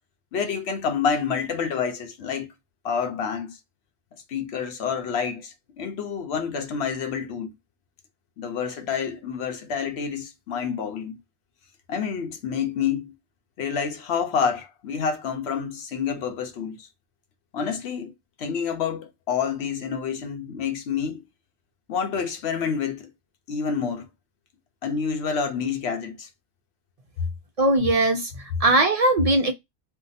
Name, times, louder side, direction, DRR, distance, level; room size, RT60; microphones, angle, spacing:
voice 1, 0.3-2.5 2.8-3.6 4.3-7.5 8.4-11.2 11.9-13.2 13.6-16.9 17.5-18.1 18.4-21.2 21.9-23.1 23.5-24.1 24.8-26.3, left 6 dB, 70° left, 0.8 m, -28 dB
voice 2, 27.6-29.5, right 2 dB, 60° right, 0.4 m, -20 dB
2.7 x 2.2 x 3.8 m
omnidirectional pair, 1.2 m